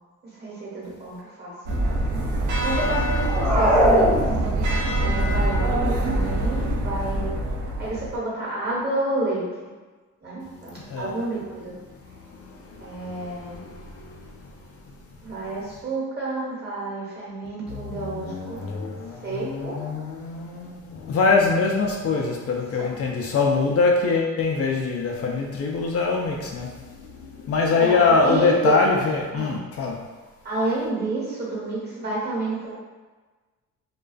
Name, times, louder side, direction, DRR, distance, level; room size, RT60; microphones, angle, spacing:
voice 1, 0.3-1.5 2.6-4.1 5.0-7.3 7.6-9.7 10.2-11.7 12.8-13.6 15.2-18.6 19.2-19.8 22.8-22.9 27.8-28.8 29.3-29.6 30.4-32.7, right 2 dB, 35° right, -6 dB, 1.1 m, -29 dB
sound 1, 1.7-8.2, right 1 dB, 75° right, 0.5 m, -24 dB
sound 2, 3.2-4.9, equal, 5° left, 0.8 m, -20 dB
voice 2, 12.4-14.3 17.7-26.7 27.2-30.0, left 4 dB, 50° left, -1 dB, 0.4 m, -24 dB
2.3 x 2.2 x 2.4 m, 1.3 s
cardioid pair, 90°, 30 cm